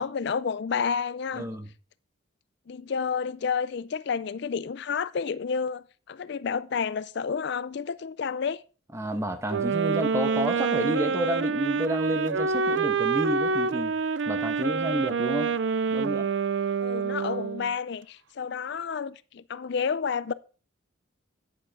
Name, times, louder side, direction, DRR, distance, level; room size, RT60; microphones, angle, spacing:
voice 1, 0.0-1.5 2.7-8.6 16.8-20.3, left 6 dB, 55° left, 0.4 m, -30 dB
voice 2, 1.3-1.7 8.9-13.9 14.3-15.5 15.9-16.3, equal, 15° right, 1.2 m, -30 dB
sound 1, 9.5-17.7, right 5 dB, 60° right, 0.5 m, -27 dB
9.8 x 9.5 x 3.5 m
head